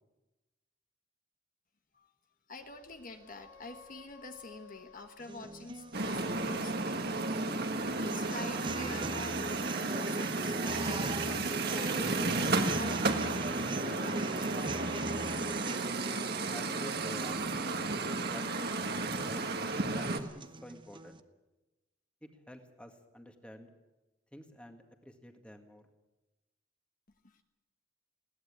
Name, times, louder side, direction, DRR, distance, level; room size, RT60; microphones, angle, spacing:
voice 1, 2.5-7.4 8.0-9.5 9.8-14.7 27.2-27.4, left 2 dB, 45° left, 6 dB, 1.2 m, -47 dB
sound 1, 2.6-9.0, left 6 dB, 85° left, 3.4 m, -57 dB
sound 2, 5.2-21.2, right 2 dB, 25° right, 0.8 m, -42 dB
sound 3, 5.9-20.2, right 3 dB, 50° right, 1.7 m, -33 dB
voice 2, 16.5-17.5 18.2-18.6 19.1-19.7 19.9-21.2 22.2-23.7 24.3-25.8, equal, 5° left, 5 dB, 1.9 m, -49 dB
20.5 x 17.5 x 8.7 m, 1.1 s
head